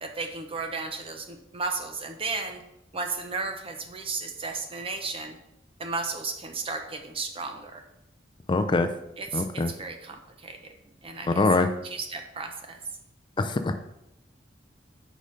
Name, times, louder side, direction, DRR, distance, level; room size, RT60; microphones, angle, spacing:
voice 1, 0.0-2.6 2.9-5.4 5.8-7.8 9.2-10.7 11.0-12.8, right 4 dB, 30° right, 5 dB, 0.8 m, -34 dB
voice 2, 8.5-8.9 9.3-9.7 11.4-11.7 13.4-13.7, left 3 dB, 25° left, 8 dB, 0.4 m, -23 dB
6.4 x 5.0 x 5.1 m, 0.85 s
head